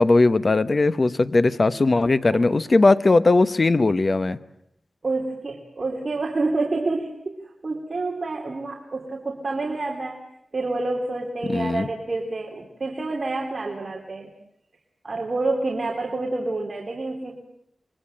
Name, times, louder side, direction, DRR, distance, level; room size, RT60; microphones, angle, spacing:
voice 1, 0.0-4.4 11.5-11.9, left 3 dB, 40° left, 13 dB, 1.1 m, -19 dB
voice 2, 5.0-10.2 10.5-14.3 15.0-17.4, right 3 dB, 45° right, 0 dB, 3.4 m, -28 dB
27.5 x 23.0 x 9.0 m, 0.74 s
wide cardioid pair, 105°, 0 cm